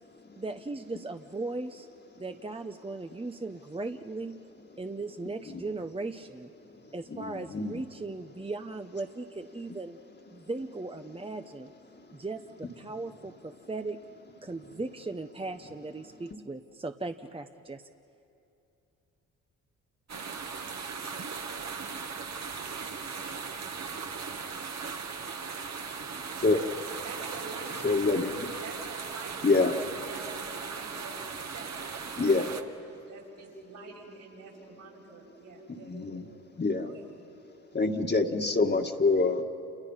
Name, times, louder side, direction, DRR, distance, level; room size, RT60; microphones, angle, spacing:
voice 1, 0.4-1.9 2.1-4.4 4.8-6.5 6.9-10.0 10.3-11.7 12.1-14.0 14.4-17.8, right 3 dB, 15° right, 6 dB, 1.0 m, -37 dB
voice 2, 7.1-7.8 26.4-26.6 27.8-28.5 29.4-29.7 32.2-32.5 35.8-36.3 36.6-36.9 37.7-39.4, left 3 dB, 30° left, 3 dB, 2.0 m, -26 dB
sound 1, 20.1-32.6, right 5 dB, 50° right, 2.0 m, -38 dB
voice 3, 27.0-27.7 28.6-29.4 29.8-31.3 31.5-31.7 32.4-36.2 36.8-37.1, right 4 dB, 70° right, -3 dB, 7.3 m, -47 dB
29.5 x 29.0 x 5.8 m, 2.7 s
supercardioid pair, 55°, 34 cm